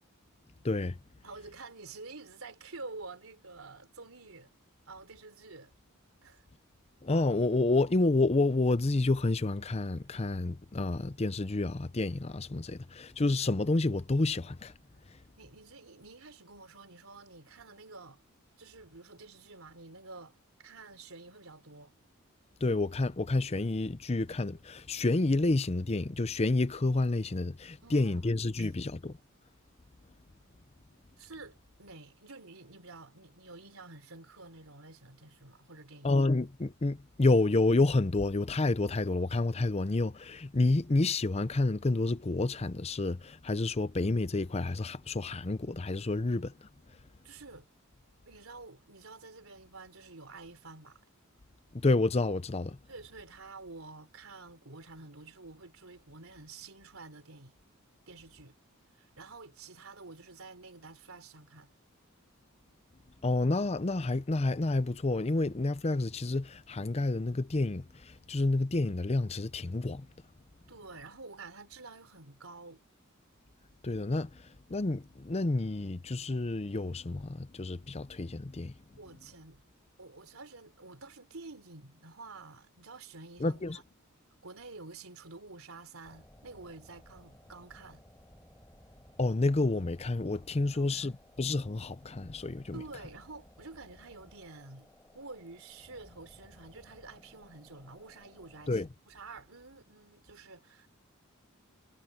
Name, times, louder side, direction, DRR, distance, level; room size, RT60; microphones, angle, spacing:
voice 1, 0.6-1.0 7.0-14.7 22.6-29.2 36.0-46.5 51.7-52.8 63.2-70.1 73.8-74.3 74.7-78.7 83.4-83.8 89.2-92.8 98.7-98.9, left 2 dB, 30° left, 0.6 m, -29 dB
voice 2, 1.2-4.5 4.9-5.7 6.2-6.4 15.4-18.2 18.6-21.9 27.8-28.7 31.2-36.2 47.2-47.7 48.3-51.0 52.9-57.6 58.1-58.5 59.0-61.7 70.7-72.8 79.0-79.6 80.0-83.8 84.4-88.0 90.7-91.1 92.7-94.9 95.1-100.9, right 3 dB, 80° right, 3.5 m, -49 dB
sound 1, 86.0-98.9, left 1 dB, 10° left, 5.5 m, -59 dB
head